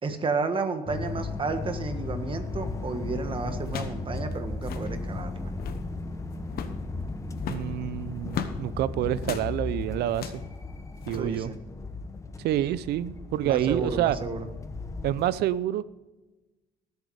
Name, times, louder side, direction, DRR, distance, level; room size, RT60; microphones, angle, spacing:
voice 1, 0.0-5.5 11.1-11.6 13.4-14.5, right 4 dB, 30° right, 8 dB, 1.6 m, -32 dB
sound 1, 0.9-15.3, left 3 dB, 20° left, 1.1 m, -36 dB
sound 2, 2.7-2.9 3.6-4.1 4.3-4.4 4.6-4.9 5.4-5.9 6.5-6.8 7.4-8.6 9.2-9.5 10.1-10.5 11.0-11.2, left 9 dB, 65° left, 1.2 m, -37 dB
voice 2, 7.5-10.3 11.1-11.5 12.4-14.2 15.0-15.8, right 12 dB, 75° right, 17 dB, 0.6 m, -27 dB
19.0 x 8.2 x 4.9 m, 1.1 s
cardioid pair, 110°, 17 cm